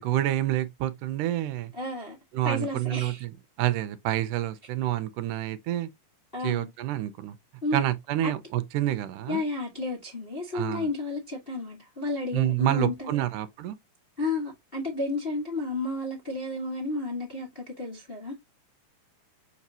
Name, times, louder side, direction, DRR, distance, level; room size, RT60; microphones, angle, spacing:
voice 1, 0.0-1.7 2.3-5.9 6.4-7.4 7.7-9.4 10.5-10.9 12.3-13.8, right 13 dB, 80° right, 2.1 m, -28 dB
voice 2, 1.7-2.2 2.4-3.2 6.3-6.7 7.6-7.8 8.2-8.3 9.3-13.2 14.2-18.4, left 2 dB, 60° left, 0.5 m, -32 dB
7.1 x 4.8 x 2.8 m
omnidirectional pair, 3.9 m